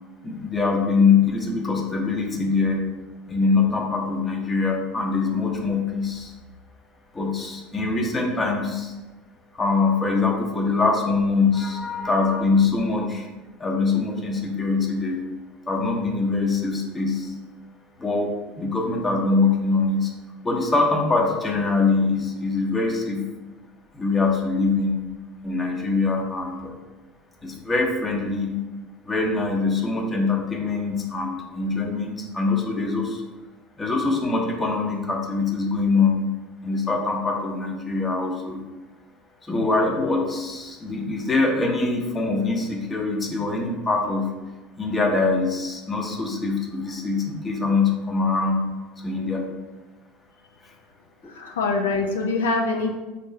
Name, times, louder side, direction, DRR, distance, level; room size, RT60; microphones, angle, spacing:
voice 1, 0.2-2.8 3.3-6.3 7.1-8.9 9.5-13.3 13.6-15.2 15.7-17.4 18.0-18.3 18.6-20.1 20.4-23.3 23.9-25.0 25.4-26.7 27.4-28.6 29.0-33.2 33.8-36.3 36.6-38.6 39.4-44.3 44.8-48.7 49.0-49.5, left 4 dB, 20° left, 1 dB, 0.7 m, -23 dB
voice 2, 51.3-53.0, left 3 dB, 80° left, 3 dB, 0.3 m, -24 dB
3.5 x 2.6 x 3.1 m, 1.2 s
hypercardioid pair, 75°, 0 cm